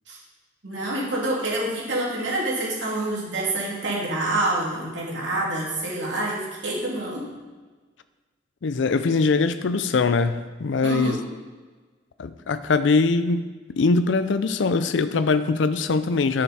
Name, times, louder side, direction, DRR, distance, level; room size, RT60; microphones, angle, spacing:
voice 1, 0.6-7.3 10.8-11.2, right 1 dB, 75° right, -4 dB, 2.9 m, -27 dB
voice 2, 8.6-11.2 12.2-13.5 13.8-16.4, left 4 dB, 75° left, 12 dB, 0.4 m, -22 dB
10.0 x 6.7 x 4.3 m, 1.3 s
head